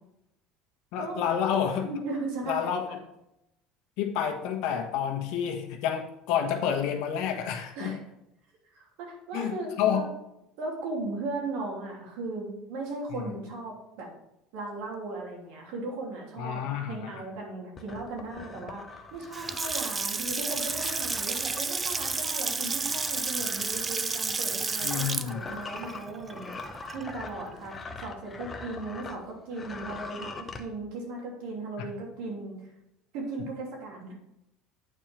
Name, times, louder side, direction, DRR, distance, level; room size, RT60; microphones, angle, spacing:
voice 1, 0.9-1.9 2.5-3.0 4.0-7.9 9.3-10.0 13.1-13.3 16.4-17.1 24.8-25.4 31.8-31.9, left 8 dB, 70° left, 4 dB, 1.3 m, -29 dB
voice 2, 1.8-2.6 7.8-8.0 8.7-10.1 10.6-14.1 14.5-18.8 19.1-32.7 33.1-34.2, right 2 dB, 75° right, 0 dB, 2.8 m, -37 dB
sound 1, 17.8-29.2 29.5-30.6, left 4 dB, 20° left, 0.8 m, -43 dB
Water tap faucet / Sink (filling or washing) / Splash splatter, 19.2-27.3, right 4 dB, 20° right, 0.4 m, -31 dB
9.0 x 4.5 x 5.2 m, 0.86 s
cardioid pair, 130°, 0 cm